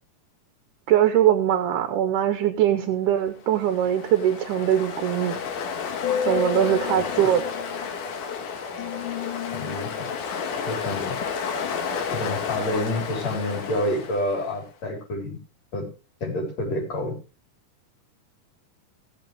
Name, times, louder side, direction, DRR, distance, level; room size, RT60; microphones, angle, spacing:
voice 1, 0.9-5.4 6.3-7.5, right 10 dB, 80° right, 7 dB, 2.4 m, -22 dB
Ocean, 3.5-14.5, left 6 dB, 75° left, 2.9 m, -30 dB
voice 2, 6.7-7.2 9.5-9.9 10.7-11.2 12.1-15.4 15.7-15.9 16.2-17.1, left 1 dB, 55° left, -1 dB, 5.3 m, -28 dB
17.5 x 7.7 x 3.4 m, 0.35 s
omnidirectional pair, 3.7 m